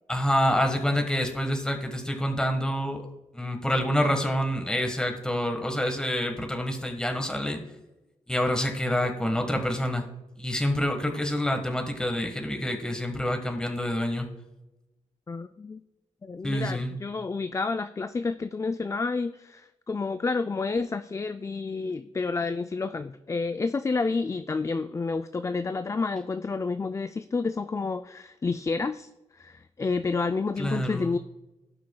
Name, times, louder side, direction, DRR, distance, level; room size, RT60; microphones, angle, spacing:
voice 1, 0.1-3.0 3.3-7.6 8.3-10.1 10.4-14.3 16.4-17.0 30.6-31.2, equal, 5° left, 4 dB, 1.4 m, -27 dB
voice 2, 15.3-15.8 16.2-29.1 29.4-31.2, left 4 dB, 25° left, 10 dB, 0.3 m, -30 dB
17.5 x 5.8 x 2.3 m, 1.0 s
cardioid pair, 65°, 13 cm